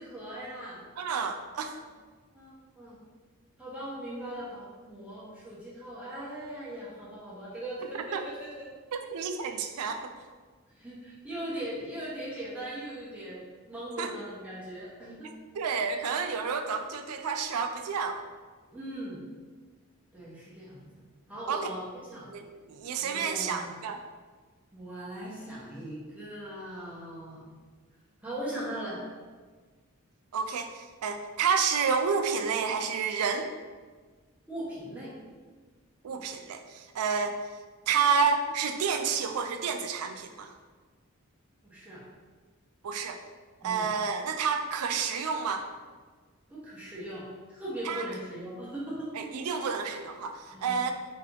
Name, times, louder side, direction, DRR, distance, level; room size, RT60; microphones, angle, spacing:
voice 1, 0.0-0.8 2.3-3.0 3.6-8.7 10.7-13.4 13.7-15.3 18.7-19.2 20.1-21.0 21.3-22.3 23.0-23.7 24.7-27.5 28.2-29.0 34.5-35.1 41.6-42.0 43.6-43.9 46.5-47.2 47.5-49.3 50.5-50.8, right 1 dB, 5° right, -8 dB, 1.0 m, -39 dB
voice 2, 1.0-1.8 8.1-8.3 8.9-10.1 14.0-14.1 15.5-18.2 21.5-21.7 22.3-24.0 30.3-33.5 36.0-37.4 37.9-40.5 42.8-43.2 43.6-45.7 47.8-48.1 49.1-50.9, right 5 dB, 85° right, 6 dB, 0.4 m, -30 dB
3.2 x 2.9 x 3.7 m, 1.4 s
head